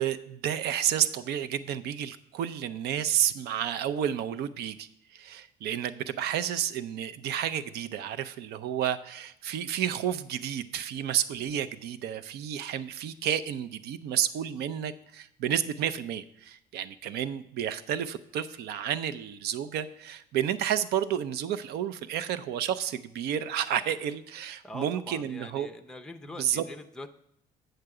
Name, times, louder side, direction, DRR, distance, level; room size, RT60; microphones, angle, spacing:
voice 1, 0.0-25.7 26.4-26.6, right 10 dB, 75° right, 13 dB, 0.5 m, -31 dB
voice 2, 24.6-27.1, left 1 dB, 5° left, 8 dB, 0.5 m, -43 dB
7.9 x 6.6 x 4.8 m, 0.76 s
cardioid pair, 110°, 17 cm